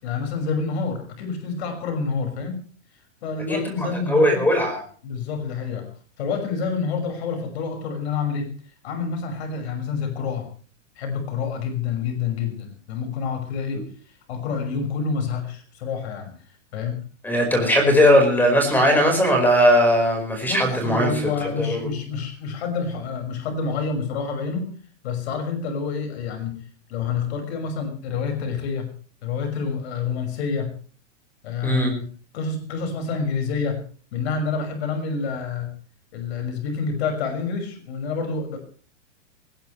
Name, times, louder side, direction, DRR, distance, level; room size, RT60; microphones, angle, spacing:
voice 1, 0.0-2.6 3.2-4.4 5.0-5.9 6.2-8.5 8.8-10.5 11.0-13.9 14.3-16.3 16.7-17.0 20.4-24.7 25.0-26.6 26.9-28.9 29.2-30.7 31.4-32.1 32.3-33.8 34.1-35.7 36.1-38.6, left 5 dB, 55° left, 5 dB, 6.1 m, -28 dB
voice 2, 3.5-4.8 13.7-13.8 17.2-21.9 31.6-31.9, equal, 5° left, 3 dB, 5.1 m, -19 dB
21.0 x 19.5 x 3.3 m, 0.42 s
supercardioid pair, 165°, 38 cm